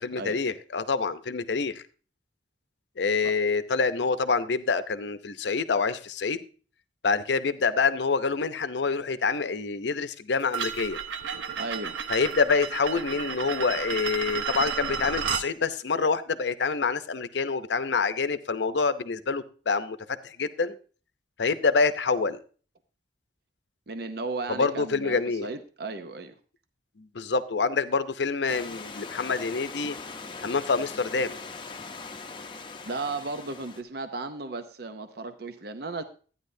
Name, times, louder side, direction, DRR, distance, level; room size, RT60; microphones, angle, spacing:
voice 1, 0.0-1.8 3.0-6.4 7.0-11.0 12.1-20.0 20.2-20.8 21.4-22.4 24.5-25.5 27.0-30.0 30.4-31.4, left 4 dB, 70° left, 12 dB, 0.6 m, -26 dB
sound 1, 10.5-15.5, right 7 dB, 90° right, 0.8 m, -32 dB
voice 2, 11.6-12.0 23.9-26.4 32.8-36.0, right 3 dB, 60° right, 9 dB, 0.7 m, -35 dB
Stream / Liquid, 28.5-33.8, left 4 dB, 25° left, 0.6 m, -41 dB
12.0 x 9.6 x 2.7 m, 0.39 s
head